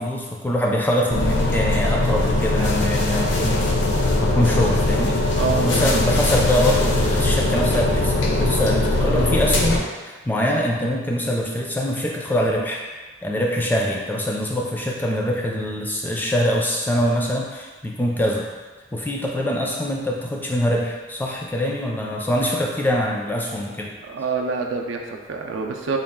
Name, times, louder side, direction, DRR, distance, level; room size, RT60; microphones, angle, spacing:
voice 1, 0.0-3.7 4.2-12.8 13.2-18.5 18.9-24.0, equal, 10° left, -1 dB, 0.3 m, -24 dB
sound 1, 1.1-9.8, left 2 dB, 75° left, 0.6 m, -20 dB
voice 2, 5.4-6.0 24.0-26.0, right 4 dB, 85° right, 2 dB, 0.4 m, -26 dB
4.0 x 2.3 x 3.6 m, 1.3 s
head